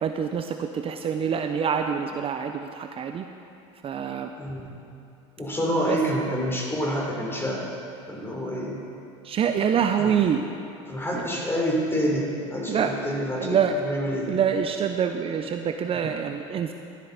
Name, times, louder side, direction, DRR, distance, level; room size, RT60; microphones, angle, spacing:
voice 1, 0.0-3.3 3.8-4.3 5.9-6.0 9.2-10.4 11.1-11.2 12.7-13.0 13.3-13.8 14.3-16.7, right 7 dB, 35° right, 6 dB, 0.6 m, -25 dB
voice 2, 4.4-4.8 5.4-7.6 8.1-8.8 10.0-10.2 10.9-14.3, equal, 15° left, -2 dB, 3.4 m, -28 dB
13.0 x 11.5 x 4.2 m, 2.6 s
hypercardioid pair, 80°, 16 cm